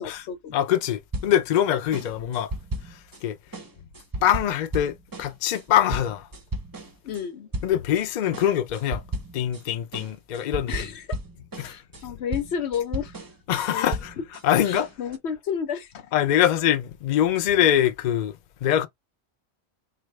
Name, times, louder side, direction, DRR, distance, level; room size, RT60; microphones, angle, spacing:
voice 1, 0.0-0.6 7.0-7.5 10.7-11.0 11.6-13.1 13.7-13.9 14.2-14.3 14.7-16.1, left 7 dB, 85° left, 1.0 m, -31 dB
voice 2, 0.5-2.5 2.9-3.4 4.2-6.3 7.6-9.0 9.3-10.9 11.6-11.7 13.5-14.1 14.4-14.9 16.1-18.9, left 11 dB, 55° left, 0.6 m, -23 dB
sound 1, 1.1-1.6 1.9-3.2 3.5-7.2 7.5-8.0 8.3-9.6 9.9-14.4 14.7-15.2, right 1 dB, 25° right, 0.5 m, -35 dB
4.0 x 2.3 x 3.2 m
omnidirectional pair, 1.1 m